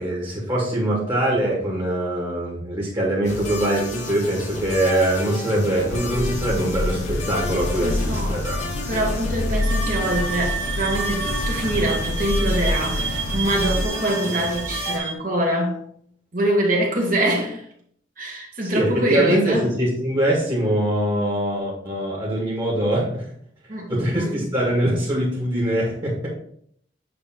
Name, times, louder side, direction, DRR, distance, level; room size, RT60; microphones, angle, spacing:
voice 1, 0.0-8.6 18.6-23.3 23.9-26.3, right 1 dB, 25° right, 2.0 m, -23 dB
sound 1, 3.2-15.0, left 2 dB, 40° left, 1.4 m, -32 dB
sound 2, 5.9-13.9, left 2 dB, 80° left, 0.8 m, -27 dB
voice 2, 7.8-8.4 8.9-15.8 16.3-17.6 18.2-19.7 23.7-24.3, right 1 dB, 45° right, 1.9 m, -24 dB
sound 3, 9.6-15.1, right 6 dB, 85° right, 1.0 m, -30 dB
8.7 x 3.3 x 4.4 m
head